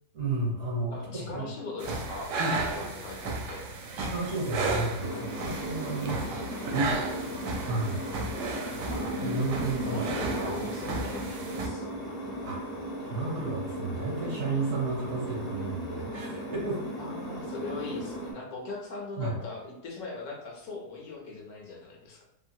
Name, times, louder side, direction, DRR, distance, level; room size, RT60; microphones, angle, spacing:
voice 1, 0.1-1.4 4.0-6.4 7.6-8.0 9.2-10.0 12.4-12.6 13.0-16.8 19.2-19.3, right 3 dB, 60° right, -2 dB, 1.2 m, -32 dB
voice 2, 0.9-3.6 6.2-6.9 8.7-9.1 9.9-11.9 17.0-22.2, left 3 dB, 70° left, -1 dB, 1.1 m, -40 dB
sound 1, 1.8-11.7, right 3 dB, 80° right, 1.1 m, -33 dB
sound 2, 5.0-18.3, equal, 40° left, 0.6 m, -36 dB
3.0 x 2.5 x 2.7 m, 0.86 s
omnidirectional pair, 1.8 m